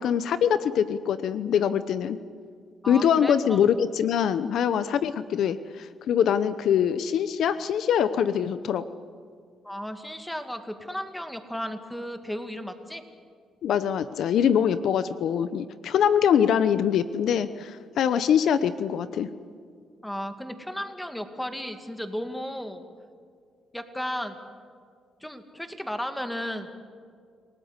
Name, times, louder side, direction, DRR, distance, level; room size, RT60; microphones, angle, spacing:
voice 1, 0.0-2.2 2.9-8.8 13.6-19.3, left 8 dB, 70° left, 13 dB, 0.8 m, -23 dB
voice 2, 2.8-3.6 9.6-13.0 20.0-22.8 23.7-24.4 25.2-26.7, equal, 5° left, 7 dB, 2.2 m, -34 dB
28.5 x 19.0 x 8.2 m, 2.1 s
cardioid pair, 90°, 0 cm